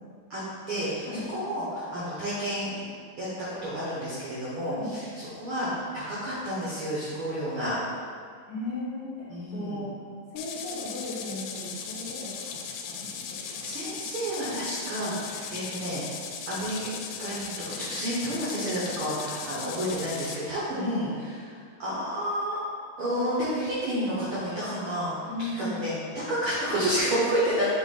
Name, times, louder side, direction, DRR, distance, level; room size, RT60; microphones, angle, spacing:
voice 1, 0.7-2.7 3.2-7.7 9.3-9.8 13.3-16.0 16.5-16.9 17.2-22.6 23.0-25.1 25.4-27.8, equal, 80° right, -8 dB, 1.2 m, -30 dB
voice 2, 8.5-9.9 10.3-12.6 12.9-13.6 20.8-21.0 25.3-25.8, left 2 dB, 70° left, -6 dB, 2.0 m, -36 dB
sound 1, 10.4-20.4, left 6 dB, 90° left, 2.3 m, -38 dB
7.8 x 3.1 x 4.0 m, 2.1 s
omnidirectional pair, 4.0 m